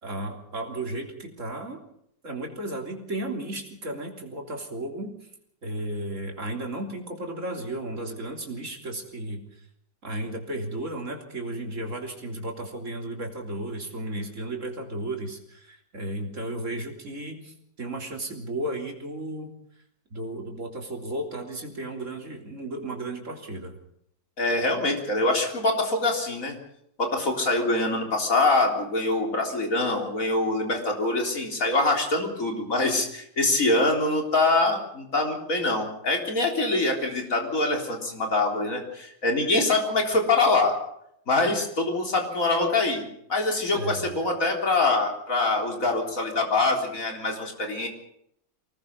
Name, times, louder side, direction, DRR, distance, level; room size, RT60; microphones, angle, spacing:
voice 1, 0.0-1.8 2.2-5.1 5.6-9.6 10.0-19.5 20.1-23.8 43.7-44.1, right 1 dB, 40° right, 2 dB, 3.8 m, -34 dB
voice 2, 24.4-26.6 27.0-40.8 41.3-43.0 43.3-47.9, left 2 dB, 45° left, 2 dB, 4.1 m, -24 dB
25.0 x 19.5 x 5.5 m, 0.73 s
omnidirectional pair, 2.1 m